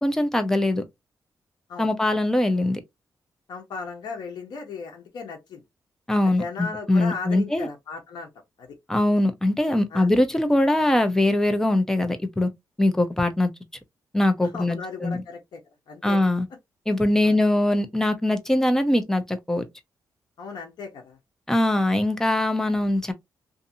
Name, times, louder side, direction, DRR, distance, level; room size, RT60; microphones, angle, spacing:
voice 1, 0.0-0.8 1.8-2.8 6.1-7.7 8.9-12.5 12.8-13.5 14.1-15.2 16.0-16.5 16.9-19.7 21.5-23.1, left 1 dB, 5° left, 0.6 m, -22 dB
voice 2, 3.5-5.6 6.2-8.3 8.6-8.7 9.9-10.1 14.4-15.6 15.9-16.2 17.2-17.4 20.4-21.2 21.8-21.9, left 4 dB, 80° left, 0.9 m, -36 dB
2.6 x 2.6 x 2.6 m
cardioid pair, 120°, 7 cm